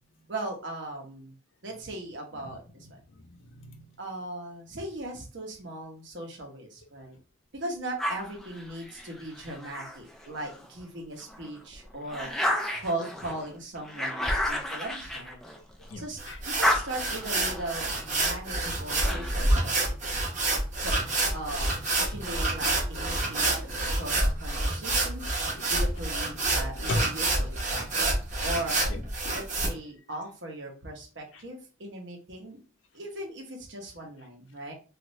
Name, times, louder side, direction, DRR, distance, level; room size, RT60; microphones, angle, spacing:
voice 1, 0.3-1.3 1.6-3.0 4.0-7.2 7.5-12.3 12.8-15.4 16.0-19.8 20.8-21.0 21.3-21.7 22.1-27.9 28.4-28.8 29.3-32.6 32.9-34.7, right 1 dB, 70° right, 1 dB, 0.9 m, -38 dB
voice 2, 3.2-3.9 15.6-15.7 15.9-16.4 25.6-25.7 26.8-27.0 28.9-29.4, left 2 dB, 90° left, 5 dB, 0.6 m, -36 dB
sound 1, 8.0-10.7 11.2-16.0 16.3-19.6, left 1 dB, ahead, 0.3 m, -33 dB
sound 2, 16.2-29.7, right 2 dB, 40° right, 0.8 m, -28 dB
2.7 x 2.5 x 3.1 m, 0.35 s
head